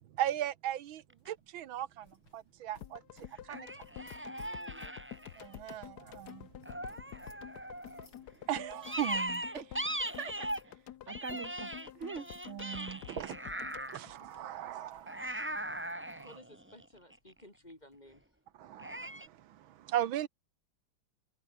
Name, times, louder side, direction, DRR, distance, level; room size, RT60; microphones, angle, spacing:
voice 1, 0.0-3.0 3.4-3.7 5.4-6.5 8.5-9.4 12.5-13.4 13.9-16.3 18.6-20.3, right 12 dB, 75° right, 1.8 m, -38 dB
sound 1, 0.8-18.0, left 3 dB, 75° left, 7.7 m, -68 dB
sound 2, 1.1-1.3 3.5-5.7 6.6-8.1 8.8-10.7 11.1-14.0 15.1-17.3 18.8-19.3, right 1 dB, 5° right, 1.9 m, -39 dB
sound 3, 2.8-15.0 15.3-15.4, left 11 dB, 60° left, 1.3 m, -49 dB
voice 2, 4.4-4.9 16.2-18.2, left 1 dB, 20° left, 4.0 m, -55 dB
voice 3, 9.5-10.3 10.7-11.7 11.9-12.2, right 5 dB, 40° right, 1.5 m, -43 dB
omnidirectional pair, 2.2 m